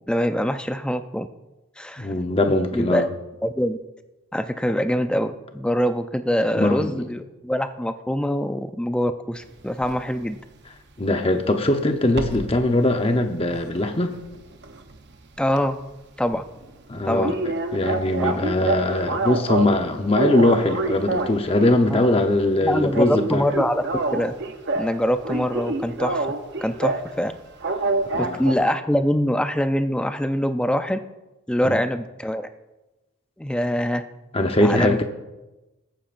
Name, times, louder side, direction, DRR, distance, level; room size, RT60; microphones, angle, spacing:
voice 1, 0.1-1.3 1.8-2.1 2.7-3.1 3.4-3.8 4.3-10.4 15.4-15.8 16.2-16.4 17.1-17.3 18.3-18.4 21.9-22.2 22.6-23.8 24.1-24.3 24.8-26.3 26.6-27.3 28.2-31.0 31.5-32.5 33.4-34.0 34.6-35.0, equal, 5° left, 9 dB, 0.4 m, -24 dB
voice 2, 2.0-3.1 6.5-7.0 11.0-14.1 16.9-17.3 17.7-23.4 28.0-28.4 31.6-31.8 34.3-35.0, left 1 dB, 25° left, 5 dB, 0.8 m, -21 dB
sound 1, 9.8-10.0 12.1-12.6 13.0-15.1 15.4-15.6 15.9-16.0 16.3-16.4 16.7-16.8 17.2-19.8 20.1-21.9 22.2-22.5 22.8-25.0 25.2-27.1 27.6-28.5, right 3 dB, 50° right, 0.8 m, -27 dB
21.0 x 9.0 x 2.5 m, 1.0 s
head